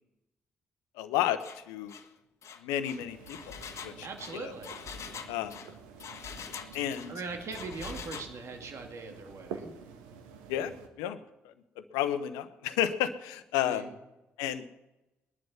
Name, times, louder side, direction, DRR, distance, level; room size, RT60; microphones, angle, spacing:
voice 1, 1.0-1.9 2.6-4.1 4.3-4.5 5.3-5.5 6.7-7.1 10.5-11.2 11.9-13.9 14.4-14.8, left 11 dB, 75° left, 12 dB, 1.0 m, -32 dB
Engine, 1.4-1.6 1.9-2.1 2.4-7.1 7.5-8.3, left 6 dB, 50° left, 1.3 m, -44 dB
sound 1, 3.1-10.9, right 6 dB, 75° right, 1.4 m, -48 dB
voice 2, 4.0-4.8 7.1-9.7 13.5-14.0, right 4 dB, 50° right, 4 dB, 2.4 m, -41 dB
20.5 x 11.0 x 5.7 m, 1.0 s
figure-of-eight pair, 40°, 6 cm